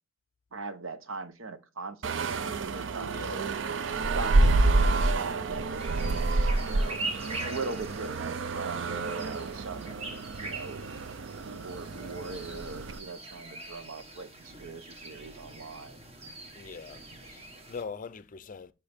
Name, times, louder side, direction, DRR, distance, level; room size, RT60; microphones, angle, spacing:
voice 1, 0.5-3.5 4.1-7.0 7.4-10.1 10.4-11.0 11.4-16.0, right 4 dB, 85° right, 0.8 m, -40 dB
sound 1, 2.0-13.0, right 2 dB, 70° right, 0.5 m, -28 dB
voice 2, 3.0-3.4 16.5-18.7, left 5 dB, 40° left, 0.4 m, -42 dB
sound 2, 5.8-17.8, right 2 dB, 30° right, 1.2 m, -43 dB
10.5 x 4.5 x 3.5 m
head